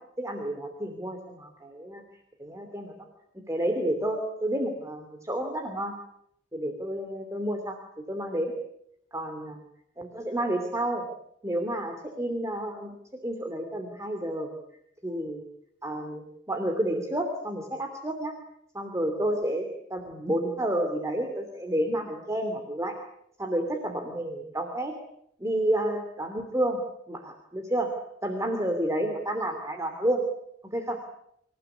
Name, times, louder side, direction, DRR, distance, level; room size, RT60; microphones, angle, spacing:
voice 1, 0.2-2.0 2.4-2.9 3.5-5.9 6.5-7.8 8.1-8.5 9.1-9.6 10.0-11.0 11.4-12.9 13.2-14.5 15.0-15.4 15.8-18.3 18.7-22.9 23.4-24.9 25.4-26.8 27.1-27.9 28.2-30.2 30.7-31.0, right 1 dB, 15° right, 5 dB, 3.0 m, -30 dB
27.0 x 17.0 x 9.8 m, 0.76 s
head